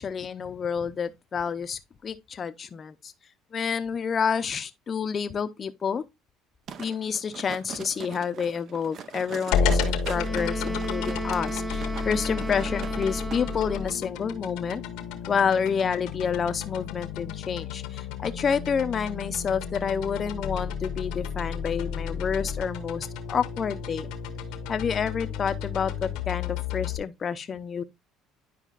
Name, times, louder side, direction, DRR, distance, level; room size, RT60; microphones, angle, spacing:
voice 1, 0.0-3.1 3.5-6.0 6.8-14.8 15.3-24.1 24.7-27.8, left 6 dB, 35° left, 0.6 m, -29 dB
sound 1, 6.7-13.4 13.8-13.9, right 8 dB, 50° right, 0.7 m, -41 dB
sound 2, 9.5-27.0, left 6 dB, 80° left, 1.1 m, -32 dB
Wind instrument woodwind instrument, 10.1-14.1, right 1 dB, 10° right, 0.7 m, -34 dB
10.0 x 4.9 x 2.4 m
supercardioid pair, 100°, 0 cm